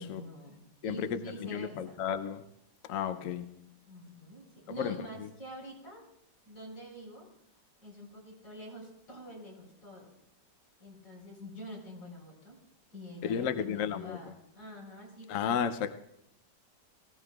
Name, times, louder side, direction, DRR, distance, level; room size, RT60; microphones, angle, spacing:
voice 1, 0.0-2.0 3.9-6.0 6.4-7.3 7.8-10.1 10.8-12.6 12.9-15.7, equal, 85° left, 5.0 m, -46 dB
voice 2, 0.8-2.4 2.9-3.6 4.8-5.3 13.2-14.2 15.3-15.9, left 8 dB, 60° left, 0.9 m, -33 dB
21.5 x 16.0 x 2.4 m
omnidirectional pair, 1.9 m